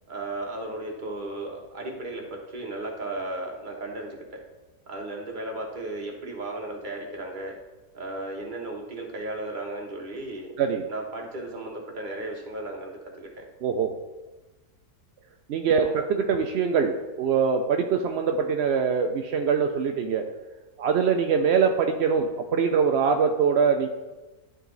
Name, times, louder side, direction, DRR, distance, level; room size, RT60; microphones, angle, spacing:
voice 1, 0.1-4.4 4.9-7.6 7.9-10.5 10.9-13.4 15.8-15.9 22.1-22.3, right 2 dB, 30° right, 0 dB, 1.3 m, -35 dB
voice 2, 13.6-13.9 15.5-20.2 20.8-23.9, right 6 dB, 65° right, 4 dB, 0.6 m, -23 dB
12.0 x 4.0 x 3.9 m, 1.1 s
omnidirectional pair, 1.7 m